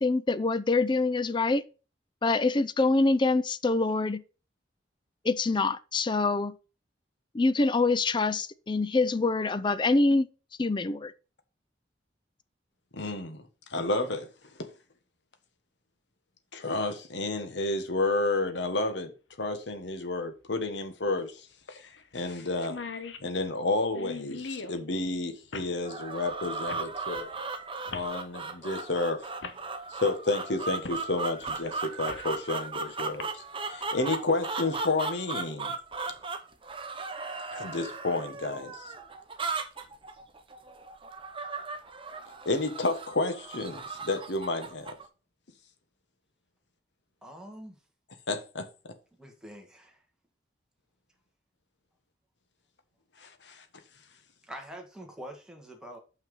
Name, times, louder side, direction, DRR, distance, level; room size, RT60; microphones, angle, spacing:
voice 1, 0.0-1.6 2.2-4.2 5.2-6.5 7.3-10.3 10.6-11.1, left 3 dB, 25° left, 0.4 m, -25 dB
voice 2, 12.9-14.3 14.6-14.7 16.5-19.1 19.4-21.8 22.1-22.8 23.2-27.3 27.9-29.3 29.9-35.7 37.5-38.9 42.4-45.0 48.3-48.7 53.2-53.6, left 2 dB, 75° left, 1.3 m, -31 dB
sound 1, 18.9-19.0 20.7-20.8 21.2-21.3 21.8-22.0 22.3-22.4 22.6-24.8 25.5-25.7 26.7-26.9 27.9-28.1 29.0-29.1 29.4-29.6 30.8-31.0 31.4-32.4 33.0-33.2, left 4 dB, 90° left, 1.0 m, -40 dB
sound 2, 25.8-45.1, right 4 dB, 30° right, 0.9 m, -37 dB
voice 3, 47.2-47.8 49.2-50.0 54.5-56.0, equal, 5° right, 1.7 m, -45 dB
6.0 x 5.8 x 5.4 m
head